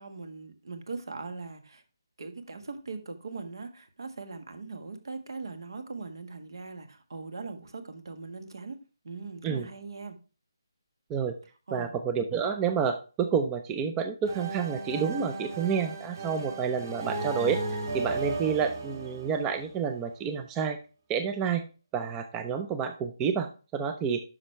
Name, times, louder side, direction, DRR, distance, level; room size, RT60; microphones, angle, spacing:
voice 1, 0.0-1.8 2.2-8.8 9.0-10.2 11.7-11.9, right 4 dB, 70° right, 1.6 m, -40 dB
voice 2, 11.7-17.6 17.9-20.8 21.1-21.7 21.9-24.2, right 6 dB, 10° right, 0.4 m, -29 dB
sound 1, 14.3-20.0, right 3 dB, 45° right, 2.5 m, -35 dB
9.8 x 6.0 x 3.3 m
hypercardioid pair, 165°, 2 cm